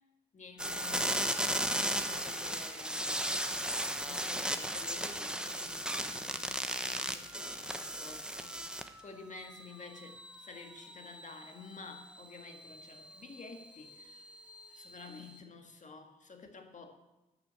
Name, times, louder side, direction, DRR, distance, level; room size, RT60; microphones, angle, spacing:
voice 1, 0.3-3.4 4.0-8.7 9.0-14.3 14.7-17.0, left 4 dB, 45° left, 4 dB, 2.0 m, -51 dB
sound 1, 0.6-9.0 9.4-15.4, right 1 dB, 5° right, 1.1 m, -37 dB
11.5 x 6.0 x 8.3 m, 1.0 s
supercardioid pair, 50°, 17 cm